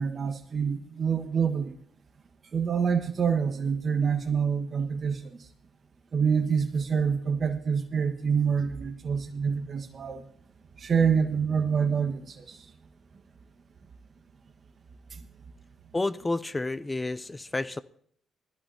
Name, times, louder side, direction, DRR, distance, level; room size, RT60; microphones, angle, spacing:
voice 1, 0.0-1.7 2.5-5.2 6.1-10.2 10.8-12.6, right 6 dB, 55° right, 6 dB, 1.4 m, -26 dB
voice 2, 15.9-17.8, left 2 dB, 25° left, 16 dB, 0.6 m, -30 dB
19.5 x 14.0 x 2.8 m, 0.64 s
supercardioid pair, 55°, 0 cm